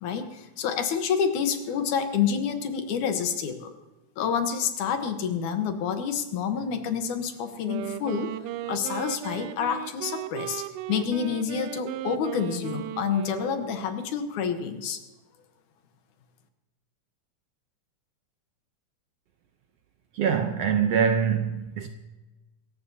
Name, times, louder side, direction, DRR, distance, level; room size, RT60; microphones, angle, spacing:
voice 1, 0.0-3.8 4.2-8.3 8.7-10.6 10.9-15.0, left 7 dB, 75° left, 2.6 m, -28 dB
Wind instrument woodwind instrument, 7.5-14.1, right 14 dB, 85° right, 2.1 m, -36 dB
voice 2, 20.1-21.9, right 7 dB, 70° right, 1.6 m, -24 dB
26.0 x 14.5 x 2.8 m
omnidirectional pair, 3.6 m